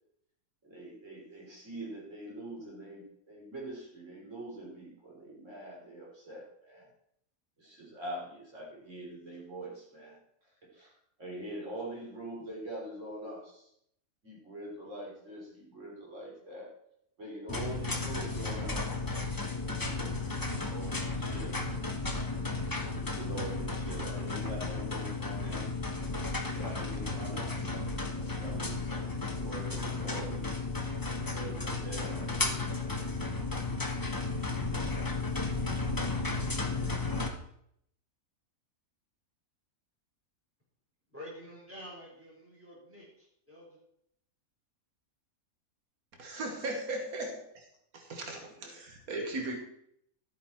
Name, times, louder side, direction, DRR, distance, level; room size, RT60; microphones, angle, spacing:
voice 1, 0.6-6.9 7.6-10.2 10.4-10.9 11.2-13.7 14.2-16.7 17.2-18.9 19.6-21.6 22.7-25.7 26.5-30.5 31.1-32.3 48.5-48.7, right 1 dB, 55° right, -3 dB, 4.0 m, -44 dB
sound 1, 17.5-37.3, left 3 dB, 15° left, 1.0 m, -34 dB
voice 2, 41.1-43.7, equal, 10° right, -4 dB, 4.3 m, -48 dB
voice 3, 46.2-47.7 47.9-49.6, right 2 dB, 90° right, 3 dB, 1.8 m, -37 dB
12.5 x 8.6 x 4.4 m, 0.71 s
omnidirectional pair, 1.5 m